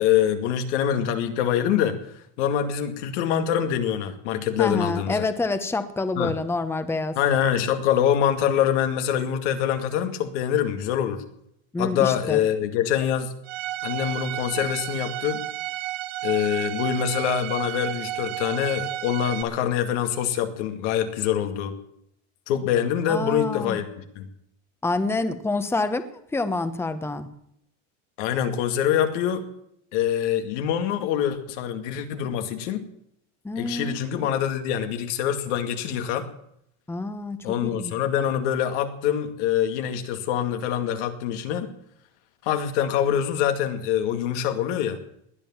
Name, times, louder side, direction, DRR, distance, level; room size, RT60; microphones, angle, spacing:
voice 1, 0.0-5.3 6.2-6.3 7.2-11.2 11.8-13.3 13.8-15.4 16.2-21.8 22.5-24.3 28.2-29.5 29.9-32.8 33.6-36.3 37.4-41.7 42.4-45.0, left 9 dB, 80° left, 7 dB, 2.3 m, -25 dB
voice 2, 4.6-7.2 11.7-12.4 23.1-23.8 24.8-27.3 33.4-33.9 34.2-34.3 36.9-37.9, left 3 dB, 5° left, 10 dB, 1.1 m, -27 dB
Bowed string instrument, 13.5-19.4, right 14 dB, 75° right, 1.8 m, -32 dB
19.5 x 10.0 x 7.3 m, 0.75 s
supercardioid pair, 130°, 35 cm